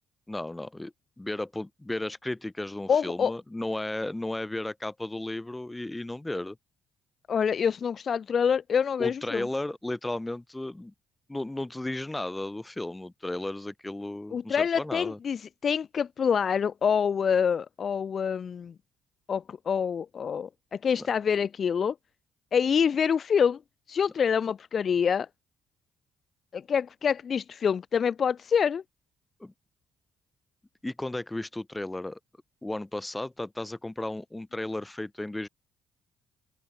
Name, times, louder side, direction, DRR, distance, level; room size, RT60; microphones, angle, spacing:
voice 1, 0.3-6.6 9.0-10.9 11.3-15.2 29.4-29.5 30.8-32.2 32.6-35.5, left 1 dB, 15° left, 6.4 m, -34 dB
voice 2, 2.9-3.3 7.3-9.5 14.3-18.7 19.3-22.0 22.5-23.6 23.9-25.3 26.5-28.8, left 7 dB, 50° left, 2.1 m, -26 dB
hypercardioid pair, 50°, 0 cm